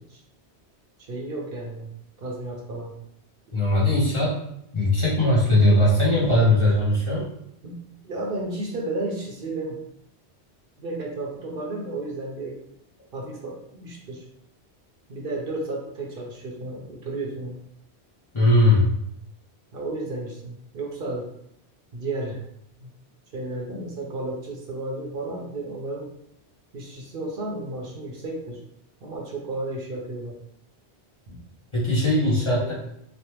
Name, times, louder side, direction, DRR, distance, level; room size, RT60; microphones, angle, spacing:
voice 1, 1.1-1.9 2.2-2.9 7.6-7.8 8.0-9.8 10.8-12.6 13.1-14.2 15.1-17.6 19.7-21.3 21.9-22.4 22.8-22.9 23.3-26.1 26.7-28.6 29.0-30.4 31.3-31.4 32.2-32.7, right 2 dB, 60° right, -1 dB, 0.8 m, -33 dB
voice 2, 3.5-4.4 4.7-7.3 18.3-18.9 31.7-32.7, left 1 dB, 35° left, -7 dB, 0.6 m, -19 dB
3.2 x 2.1 x 2.9 m, 0.75 s
omnidirectional pair, 1.1 m